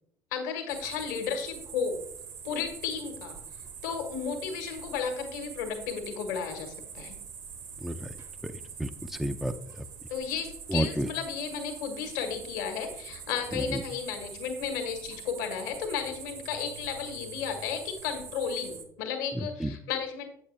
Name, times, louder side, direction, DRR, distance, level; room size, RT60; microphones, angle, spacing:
voice 1, 0.3-2.0 2.4-3.4 3.8-7.2 10.1-20.3, left 6 dB, 70° left, 5 dB, 1.3 m, -33 dB
sound 1, 0.7-18.8, right 6 dB, 55° right, 1.3 m, -44 dB
voice 2, 7.8-8.1 8.4-8.5 8.8-9.9 10.7-11.1 13.7-13.8 19.6-19.7, right 1 dB, 5° right, 5 dB, 0.5 m, -31 dB
8.3 x 7.2 x 3.2 m, 0.73 s
hypercardioid pair, 65°, 10 cm